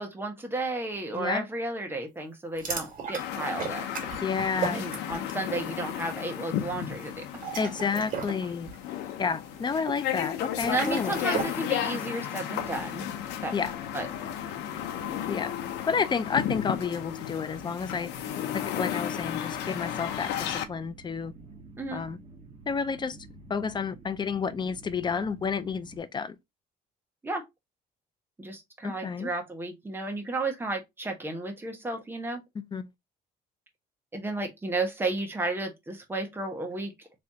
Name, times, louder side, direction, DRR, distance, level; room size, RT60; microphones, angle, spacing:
voice 1, 0.0-3.8 4.6-7.2 10.6-13.1 13.4-13.5 13.9-14.1 21.8-22.0 27.2-27.4 28.4-32.4 34.1-36.9, right 2 dB, 15° right, 1.2 m, -33 dB
voice 2, 1.1-1.5 4.2-4.8 7.5-8.7 9.2-11.2 13.5-13.7 15.3-15.5 15.9-18.1 18.5-21.3 21.9-22.2 22.7-23.2 23.5-26.4 28.8-29.3 32.6-32.9, left 5 dB, 25° left, 0.5 m, -30 dB
sound 1, 2.6-5.5 5.8-6.1 7.2-11.6, right 6 dB, 55° right, 1.6 m, -36 dB
sound 2, 3.2-20.6, left 11 dB, 85° left, 0.7 m, -34 dB
sound 3, 12.5-26.0, right 2 dB, 35° right, 1.2 m, -49 dB
3.3 x 3.1 x 2.7 m
cardioid pair, 110°, 17 cm